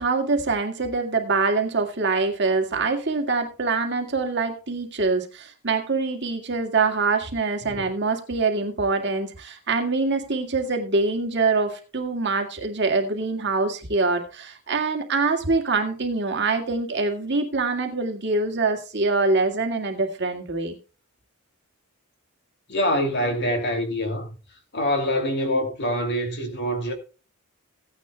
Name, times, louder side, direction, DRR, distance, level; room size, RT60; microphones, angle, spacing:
voice 1, 0.0-20.8, right 3 dB, 50° right, 2.0 m, -24 dB
voice 2, 22.7-24.4 24.7-26.9, equal, 50° left, 2.6 m, -25 dB
16.5 x 9.8 x 2.3 m
head